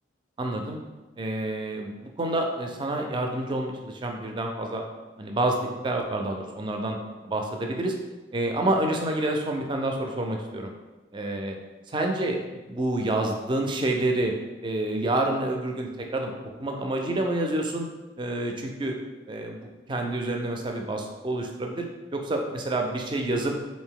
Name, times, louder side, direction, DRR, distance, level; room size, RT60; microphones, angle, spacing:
voice 1, 0.4-0.8 1.2-4.8 5.2-7.0 7.2-7.9 8.3-10.7 11.1-11.6 11.9-12.4 12.7-14.3 14.6-16.3 16.6-17.9 18.2-18.9 19.3-21.9 22.1-23.5, right 1 dB, 25° right, 2 dB, 0.4 m, -28 dB
3.5 x 2.6 x 3.7 m, 1.2 s
head